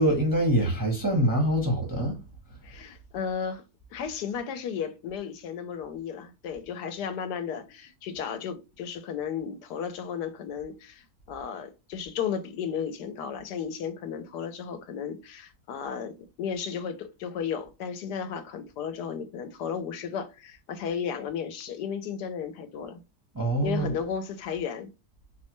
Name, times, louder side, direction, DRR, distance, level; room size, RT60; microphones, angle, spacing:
voice 1, 0.0-2.2 23.3-23.9, right 1 dB, 15° right, 0.7 m, -24 dB
voice 2, 2.6-3.6 3.9-16.1 16.4-23.0 23.6-24.9, left 7 dB, 75° left, 1.2 m, -34 dB
4.1 x 2.1 x 2.9 m
omnidirectional pair, 1.8 m